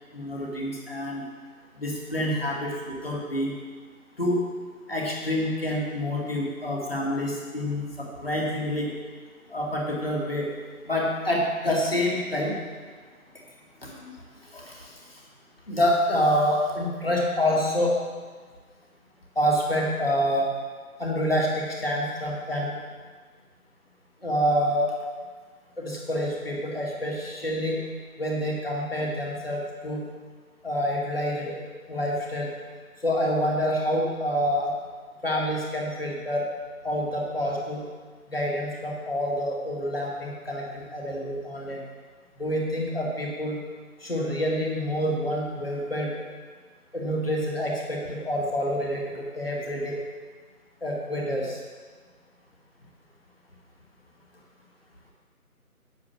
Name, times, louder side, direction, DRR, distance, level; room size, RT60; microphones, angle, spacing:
voice 1, 0.1-1.2 1.7-3.5 4.2-4.4 4.9-8.9 9.5-10.5 10.8-12.6 13.8-14.0 14.5-14.9 15.7-18.0 19.4-20.5 21.0-22.7 24.2-24.9 25.8-27.8 28.2-30.0 30.6-31.5 31.9-32.5 33.0-34.7 35.2-36.5 36.8-37.8 38.3-41.8 42.4-43.6 44.0-46.1 46.9-50.0 50.8-51.6, equal, 40° left, -2 dB, 2.3 m, -27 dB
9.5 x 8.9 x 6.4 m, 1.5 s
figure-of-eight pair, 175°, 45 cm